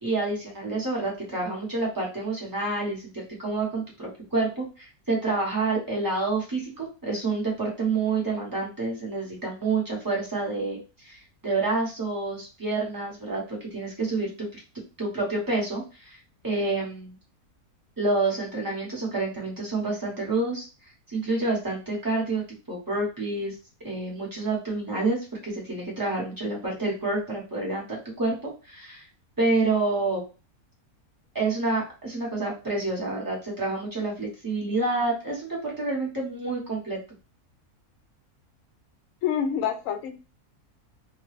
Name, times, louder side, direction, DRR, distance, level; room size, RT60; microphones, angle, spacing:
voice 1, 0.0-10.8 11.0-14.6 15.0-16.2 16.4-17.1 18.0-20.6 21.1-22.4 22.7-23.5 23.8-29.0 29.4-30.2 31.3-37.0, right 3 dB, 15° right, -3 dB, 1.0 m, -28 dB
voice 2, 39.2-40.2, left 8 dB, 65° left, 7 dB, 0.9 m, -27 dB
2.9 x 2.2 x 3.2 m, 0.32 s
omnidirectional pair, 1.6 m